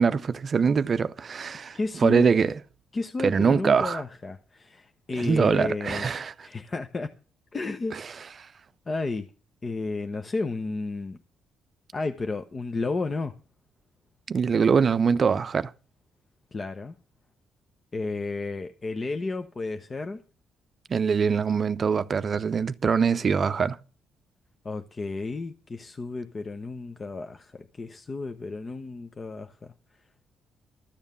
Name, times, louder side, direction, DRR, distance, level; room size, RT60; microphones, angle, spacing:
voice 1, 0.0-2.5 3.2-4.0 5.2-6.5 14.3-15.7 20.9-23.8, right 6 dB, 45° right, 0.6 m, -23 dB
voice 2, 1.7-2.3 2.9-6.1 6.4-7.1 7.5-8.0 8.9-9.3 9.6-11.2 11.9-13.3 16.5-16.9 17.9-20.2 24.6-29.7, left 3 dB, 35° left, 0.9 m, -32 dB
13.5 x 7.2 x 6.8 m
cardioid pair, 90°, 0 cm